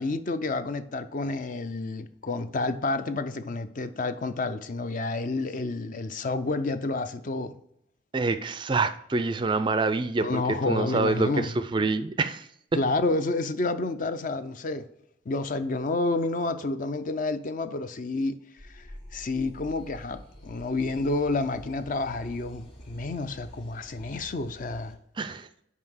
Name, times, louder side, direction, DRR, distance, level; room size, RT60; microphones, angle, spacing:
voice 1, 0.0-7.5 10.2-11.5 12.7-14.8 15.3-18.4 18.7-18.8 19.1-25.0, left 2 dB, 45° left, 0.5 m, -29 dB
voice 2, 8.1-12.5 25.2-25.5, right 3 dB, 25° right, 0.3 m, -26 dB
sound 1, 18.6-24.9, equal, 25° left, 1.5 m, -47 dB
5.6 x 4.7 x 6.3 m
head